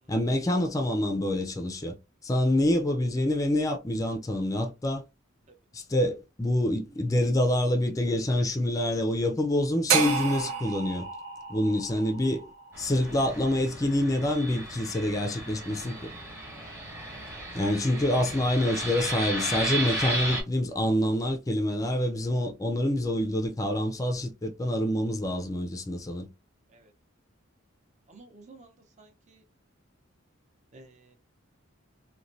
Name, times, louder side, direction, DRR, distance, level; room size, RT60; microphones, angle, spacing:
voice 1, 0.1-2.0 2.2-5.0 5.7-11.1 11.5-12.5 12.8-16.1 17.5-26.3, left 1 dB, 15° left, 0.4 m, -26 dB
sound 1, 9.9-14.0, right 6 dB, 90° right, 0.7 m, -31 dB
Fixed-wing aircraft airplane, 12.7-20.4, right 1 dB, 10° right, 1.0 m, -35 dB
voice 2, 28.1-29.4 30.7-31.2, right 2 dB, 35° right, 0.6 m, -53 dB
3.0 x 2.2 x 2.6 m
head